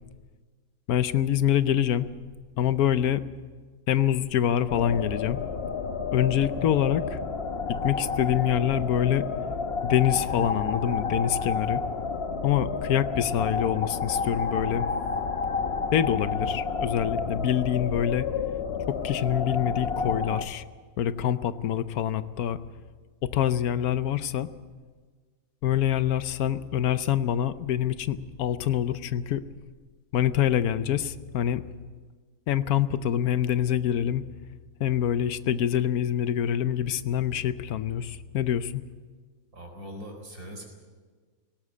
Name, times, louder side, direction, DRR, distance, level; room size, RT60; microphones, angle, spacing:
voice 1, 0.9-2.1 2.6-3.2 3.9-5.4 6.1-7.2 7.7-9.3 9.8-11.8 12.4-14.9 15.9-18.3 18.9-20.6 21.0-22.6 23.2-24.5 25.6-29.4 30.1-31.6 32.5-34.2 34.8-38.8, left 10 dB, 85° left, 13 dB, 1.2 m, -25 dB
sound 1, 4.7-20.4, left 5 dB, 50° left, 1.2 m, -30 dB
voice 2, 39.5-40.7, equal, 85° right, 3 dB, 4.6 m, -41 dB
18.5 x 17.5 x 8.4 m, 1.5 s
omnidirectional pair, 1.5 m